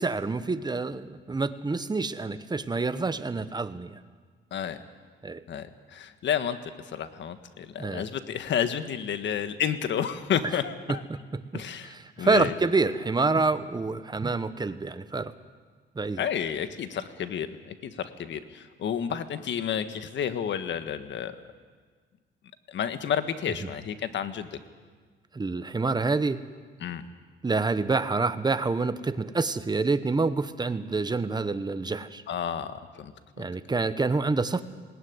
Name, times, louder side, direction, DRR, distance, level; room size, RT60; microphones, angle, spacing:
voice 1, 0.0-4.0 5.2-5.4 7.8-8.1 10.9-15.3 15.9-16.2 25.3-26.4 27.4-32.2 33.4-34.6, right 3 dB, 20° right, 12 dB, 1.1 m, -27 dB
voice 2, 5.5-11.0 11.5-12.5 16.2-21.3 22.7-24.5 26.8-27.0 32.3-33.1 33.4-33.5, left 8 dB, 65° left, 10 dB, 1.5 m, -31 dB
20.0 x 18.5 x 9.6 m, 1.5 s
cardioid pair, 90°, 20 cm